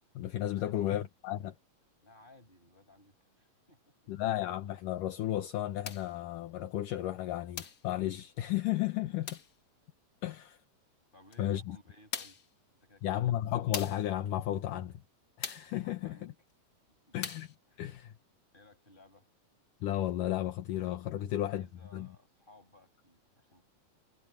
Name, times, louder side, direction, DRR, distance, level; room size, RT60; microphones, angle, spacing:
voice 1, 0.2-1.5 4.1-9.4 10.2-10.6 11.4-11.8 13.0-14.9 15.4-16.3 17.1-17.5 17.8-18.1 19.8-21.7 21.9-22.1, left 13 dB, 70° left, 2.5 m, -33 dB
voice 2, 2.0-4.1 8.9-9.2 11.1-12.4 12.8-13.4 15.8-16.4 17.1-17.2 17.7-17.9 18.5-19.3 21.2-23.6, left 2 dB, 15° left, 8.0 m, -60 dB
sound 1, 5.8-6.1 7.6-7.9 9.3-9.5 11.3-11.4 12.1-12.5 13.7-14.1 15.4-15.8 17.2-17.5, left 6 dB, 55° left, 1.1 m, -40 dB
omnidirectional pair, 4.0 m